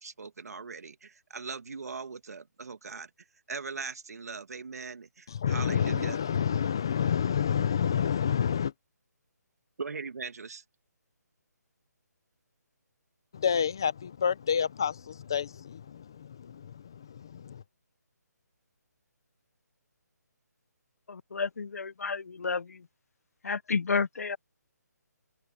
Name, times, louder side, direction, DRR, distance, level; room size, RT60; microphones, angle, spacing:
voice 1, 0.0-3.1 3.5-6.2 9.8-10.6, right 4 dB, 60° right, 2.0 m, -40 dB
voice 2, 5.3-8.7 13.3-17.6, left 8 dB, 15° left, 0.4 m, -29 dB
voice 3, 21.1-22.9 23.4-24.4, left 5 dB, 60° left, 0.6 m, -31 dB
open air
hypercardioid pair, 180°, 10 cm